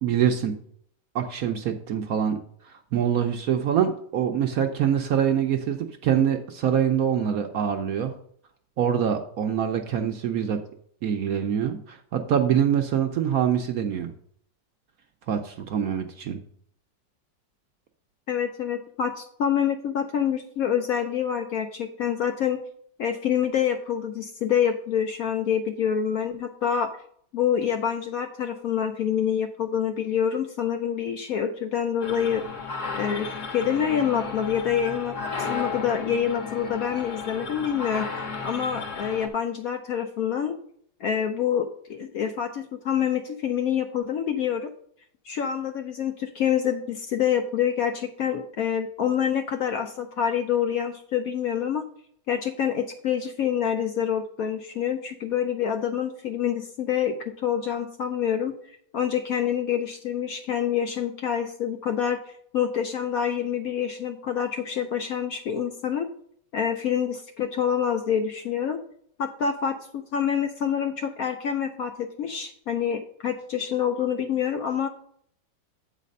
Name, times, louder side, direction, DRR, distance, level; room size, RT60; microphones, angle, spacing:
voice 1, 0.0-0.5 1.1-2.4 2.9-8.1 8.8-10.6 11.0-14.1 15.3-16.4, right 8 dB, 65° right, 5 dB, 0.9 m, -24 dB
voice 2, 18.3-22.6 23.0-26.9 27.3-32.4 33.0-33.3 33.5-40.6 41.0-44.7 45.3-51.8 52.3-58.5 58.9-62.2 62.5-66.1 66.5-68.8 69.2-74.9, left 8 dB, 70° left, 6 dB, 0.9 m, -26 dB
sound 1, 32.0-39.3, left 4 dB, 50° left, 1.1 m, -34 dB
8.4 x 4.1 x 5.2 m, 0.63 s
omnidirectional pair, 2.0 m